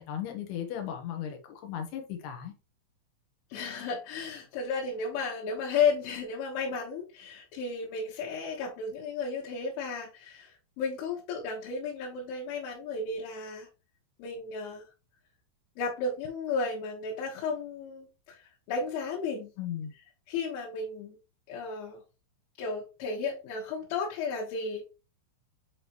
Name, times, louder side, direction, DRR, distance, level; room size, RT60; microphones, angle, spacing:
voice 1, 0.0-2.5 19.6-19.9, left 9 dB, 70° left, 3.0 m, -36 dB
voice 2, 3.5-13.7 14.2-14.8 15.8-19.5 20.3-21.2 21.5-22.0 22.6-24.8, left 4 dB, 90° left, 3.7 m, -33 dB
8.1 x 3.8 x 3.0 m
omnidirectional pair, 5.3 m